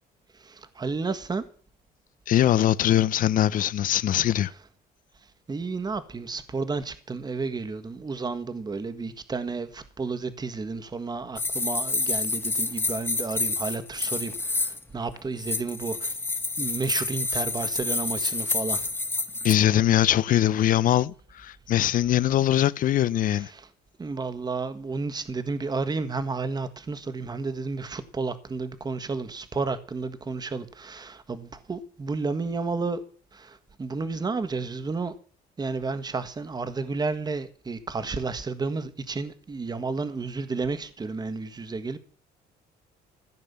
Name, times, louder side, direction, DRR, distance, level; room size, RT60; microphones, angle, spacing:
voice 1, 0.3-1.4 5.5-16.2 16.6-18.9 23.2-23.7 24.0-33.0 33.3-35.1 35.6-42.0, right 4 dB, 25° right, 1.6 m, -32 dB
voice 2, 2.3-4.5 19.4-23.5, left 12 dB, 55° left, 0.7 m, -22 dB
sound 1, 11.4-14.8 15.4-19.5, left 3 dB, 15° left, 1.5 m, -28 dB
15.0 x 8.8 x 7.0 m
cardioid pair, 110°, 17 cm